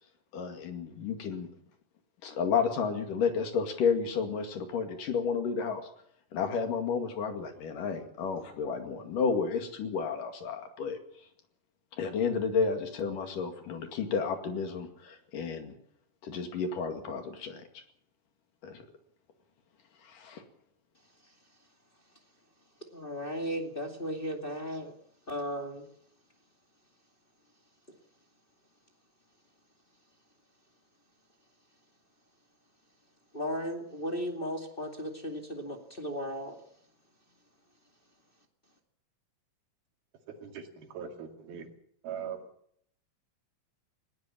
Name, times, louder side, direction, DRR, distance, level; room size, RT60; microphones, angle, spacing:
voice 1, 0.3-1.5 2.2-5.8 6.3-11.0 12.0-15.7 16.2-17.6 18.6-18.8 20.1-20.4, left 5 dB, 65° left, 6 dB, 3.7 m, -31 dB
voice 2, 22.9-24.9 25.3-25.9 33.3-36.6, equal, 20° left, 2 dB, 1.9 m, -35 dB
voice 3, 40.3-41.7 42.0-42.5, right 7 dB, 85° right, 4 dB, 4.2 m, -41 dB
19.5 x 18.0 x 7.4 m, 0.68 s
omnidirectional pair, 4.2 m